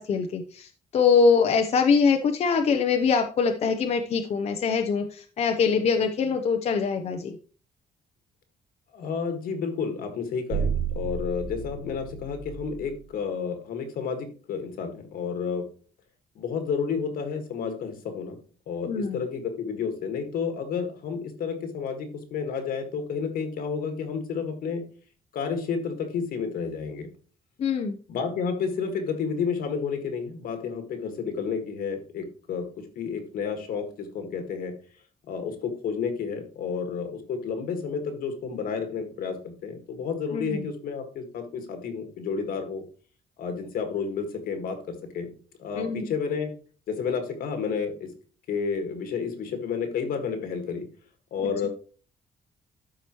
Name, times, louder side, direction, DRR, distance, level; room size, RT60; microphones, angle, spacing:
voice 1, 0.0-7.4 18.9-19.2 27.6-28.0 40.3-40.7 45.8-46.0, left 5 dB, 45° left, 5 dB, 0.7 m, -23 dB
voice 2, 8.9-15.6 16.4-18.4 18.7-24.8 25.3-27.1 28.1-34.7 35.3-42.8 43.4-45.3 45.6-46.5 46.9-48.1 48.5-50.8 51.3-51.7, left 6 dB, 75° left, 6 dB, 1.8 m, -31 dB
sound 1, 10.5-12.9, right 6 dB, 55° right, 1.0 m, -31 dB
12.5 x 4.8 x 3.0 m, 0.40 s
cardioid pair, 150°, 15 cm